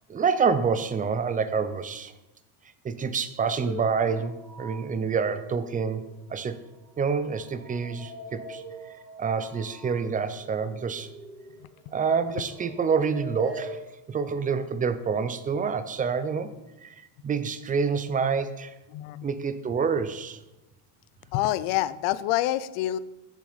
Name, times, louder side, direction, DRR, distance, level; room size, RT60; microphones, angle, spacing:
voice 1, 0.1-2.1 2.8-6.0 6.3-6.6 7.0-8.6 9.2-11.1 11.9-13.8 14.1-16.5 16.8-17.0 17.2-18.7 19.2-20.4, right 5 dB, 20° right, 12 dB, 0.3 m, -27 dB
sound 1, 3.6-6.1 6.5-13.8, equal, ahead, 2.4 m, -43 dB
voice 2, 18.9-19.3 21.3-23.0, left 14 dB, 75° left, 16 dB, 0.6 m, -26 dB
6.7 x 6.1 x 3.9 m, 0.98 s
supercardioid pair, 95°, 49 cm